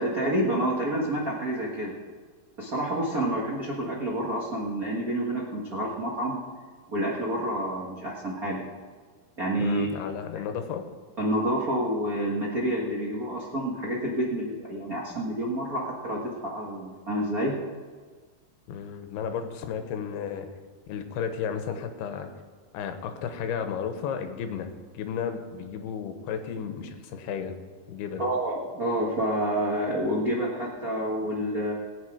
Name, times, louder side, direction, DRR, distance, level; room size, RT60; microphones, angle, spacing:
voice 1, 0.0-1.9 2.6-6.4 6.9-8.6 9.4-9.9 11.2-17.5 28.2-31.7, right 1 dB, 80° right, -3 dB, 0.7 m, -28 dB
voice 2, 9.6-10.9 18.7-20.5 20.9-22.3 22.7-27.6 27.9-28.2, left 7 dB, 90° left, 7 dB, 3.1 m, -33 dB
19.0 x 8.3 x 5.0 m, 1.5 s
omnidirectional pair, 4.5 m